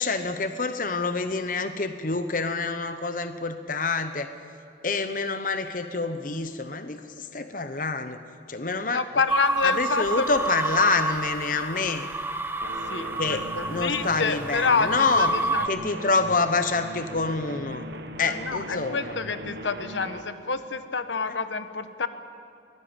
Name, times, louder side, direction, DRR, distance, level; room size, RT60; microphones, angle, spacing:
voice 1, 0.0-4.3 4.8-8.2 8.5-9.2 9.6-12.1 13.2-15.3 15.6-17.9 18.2-19.1, left 3 dB, 45° left, 9 dB, 0.9 m, -27 dB
voice 2, 8.9-10.3 12.9-15.7 18.2-22.1, left 4 dB, 85° left, 10 dB, 1.2 m, -28 dB
sound 1, 9.3-15.7, right 2 dB, 10° right, 0.9 m, -30 dB
sound 2, 12.6-20.2, right 1 dB, 65° right, 1.5 m, -39 dB
22.5 x 17.5 x 8.9 m, 2.5 s
head